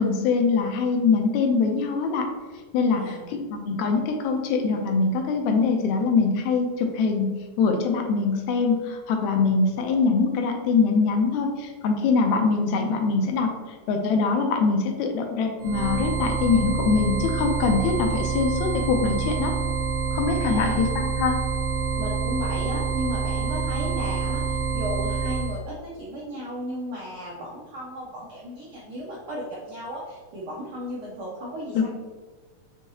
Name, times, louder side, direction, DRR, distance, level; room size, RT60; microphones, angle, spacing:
voice 1, 0.0-2.3 2.7-13.5 13.9-19.5 20.1-21.4 31.8-31.9, left 4 dB, 80° left, 4 dB, 1.9 m, -23 dB
sound 1, 15.6-25.6, right 5 dB, 70° right, 1.5 m, -27 dB
voice 2, 20.4-20.8 21.9-31.9, equal, 85° right, -5 dB, 1.2 m, -35 dB
6.3 x 2.7 x 2.7 m, 1.4 s
omnidirectional pair, 3.3 m